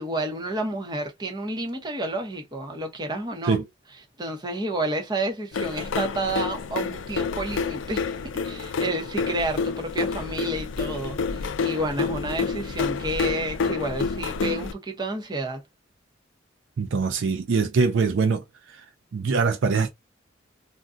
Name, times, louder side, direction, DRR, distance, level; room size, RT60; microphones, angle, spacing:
voice 1, 0.0-3.6 4.2-8.1 8.4-15.6, right 1 dB, 20° right, 0.8 m, -30 dB
sound 1, 5.5-14.7, left 5 dB, 70° left, 0.4 m, -28 dB
voice 2, 16.8-18.4 18.7-18.8 19.1-19.9, right 5 dB, 65° right, 0.4 m, -23 dB
2.5 x 2.2 x 3.6 m
head